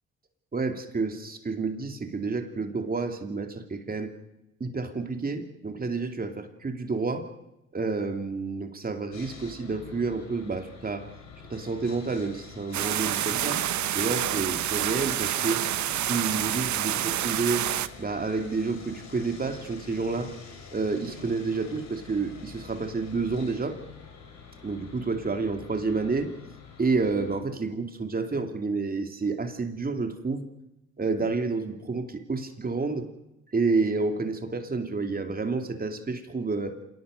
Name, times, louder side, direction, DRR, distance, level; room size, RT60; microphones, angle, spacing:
voice 1, 0.5-4.1 4.6-7.3 7.7-11.1 11.5-13.6 13.9-15.6 16.0-17.7 18.0-20.3 20.7-23.8 24.6-26.3 26.8-30.4 31.0-33.1 33.5-36.8, right 4 dB, 30° right, 6 dB, 2.8 m, -29 dB
Sawing, 9.1-27.4, left 5 dB, 70° left, 5.8 m, -46 dB
sound 1, 12.7-17.9, right 12 dB, 70° right, 1.0 m, -28 dB
26.5 x 18.5 x 6.7 m, 0.90 s
cardioid pair, 90°, 30 cm